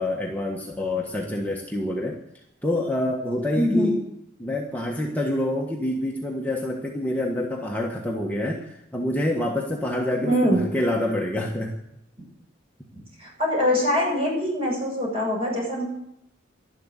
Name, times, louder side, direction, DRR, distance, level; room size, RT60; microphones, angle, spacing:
voice 1, 0.0-2.2 2.6-4.0 4.4-11.7, left 1 dB, 10° left, -2 dB, 1.4 m, -27 dB
voice 2, 3.6-3.9 10.2-10.6 13.2-15.9, left 1 dB, 30° right, -2 dB, 7.6 m, -23 dB
12.0 x 11.5 x 8.4 m, 0.79 s
head